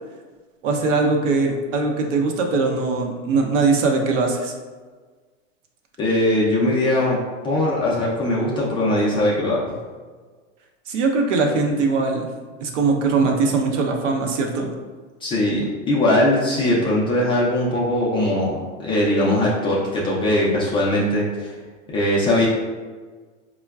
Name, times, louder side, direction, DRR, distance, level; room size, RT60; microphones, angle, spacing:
voice 1, 0.6-4.5 10.9-12.3 12.6-14.7, right 4 dB, 70° right, 2 dB, 0.7 m, -21 dB
voice 2, 6.0-7.2 7.4-9.8 15.2-21.5 21.9-22.5, left 1 dB, 15° left, -6 dB, 0.3 m, -20 dB
4.4 x 2.2 x 2.3 m, 1.4 s
hypercardioid pair, 120°, 38 cm